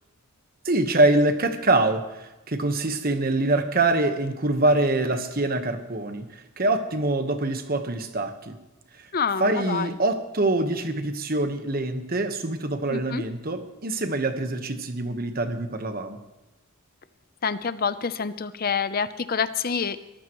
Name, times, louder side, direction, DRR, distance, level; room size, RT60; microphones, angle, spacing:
voice 1, 0.6-8.6 9.4-16.2, right 2 dB, 45° right, 7 dB, 1.3 m, -24 dB
voice 2, 9.1-9.9 12.9-13.2 17.4-20.0, left 6 dB, 45° left, 13 dB, 0.7 m, -27 dB
22.0 x 14.0 x 3.1 m, 1.1 s
head